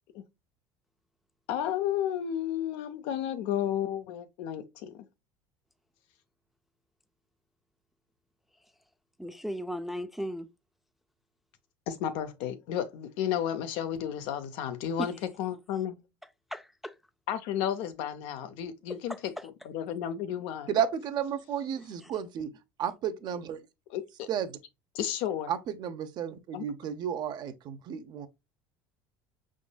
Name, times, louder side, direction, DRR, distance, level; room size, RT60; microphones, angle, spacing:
voice 1, 1.5-5.0 11.9-15.1 15.4-16.0 17.3-19.1 19.7-20.7 23.9-24.3 24.9-25.5 26.5-26.6, left 10 dB, 70° left, 0.7 m, -32 dB
voice 2, 9.2-10.5 15.0-15.1 16.5-17.0 18.9-19.5 21.8-22.1, equal, ahead, 0.3 m, -37 dB
voice 3, 20.7-22.5 22.8-23.6 24.3-24.6 25.5-28.3, right 9 dB, 50° right, 0.6 m, -32 dB
5.0 x 3.7 x 2.3 m
supercardioid pair, 110°, 10 cm